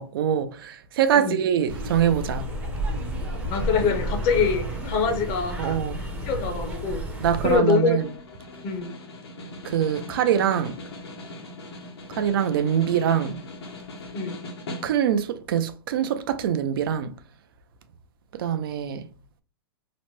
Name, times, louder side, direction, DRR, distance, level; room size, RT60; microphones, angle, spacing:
voice 1, 0.0-2.4 5.6-6.0 7.2-8.1 9.6-10.8 12.1-13.4 14.8-17.1 18.3-19.0, right 9 dB, 65° right, 0.4 m, -24 dB
sound 1, 1.7-7.6, right 1 dB, 10° right, 0.6 m, -31 dB
voice 2, 3.5-5.8 6.2-7.0 7.4-8.0 8.6-8.9 14.1-14.4, left 5 dB, 35° left, 0.7 m, -24 dB
Snare drum, 7.3-15.3, left 2 dB, 85° left, 1.1 m, -40 dB
3.0 x 2.1 x 3.0 m
hypercardioid pair, 145°, 13 cm